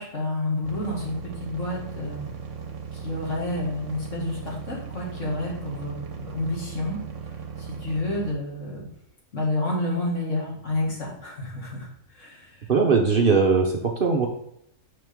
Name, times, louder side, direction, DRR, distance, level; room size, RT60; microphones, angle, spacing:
voice 1, 0.0-2.3 2.9-7.0 7.6-8.9 9.3-12.7, left 2 dB, 65° left, -3 dB, 2.5 m, -30 dB
sound 1, 0.6-8.3, right 6 dB, 65° right, 1.3 m, -37 dB
voice 2, 12.7-14.3, right 4 dB, 50° right, 2 dB, 0.8 m, -20 dB
6.3 x 5.9 x 3.6 m, 0.75 s
omnidirectional pair, 1.4 m